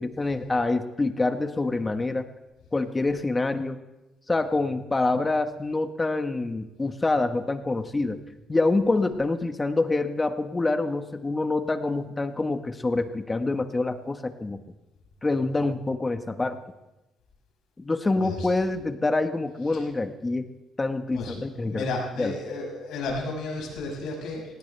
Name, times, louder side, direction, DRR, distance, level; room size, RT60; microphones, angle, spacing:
voice 1, 0.0-2.3 2.7-3.8 4.3-8.2 8.5-14.6 15.2-16.6 17.8-20.5 20.8-21.9 22.2-22.4, left 2 dB, 20° left, 8 dB, 1.2 m, -26 dB
voice 2, 21.1-24.5, left 3 dB, 85° left, -1 dB, 5.6 m, -33 dB
18.0 x 17.0 x 3.4 m, 1.0 s
cardioid pair, 90°, 0 cm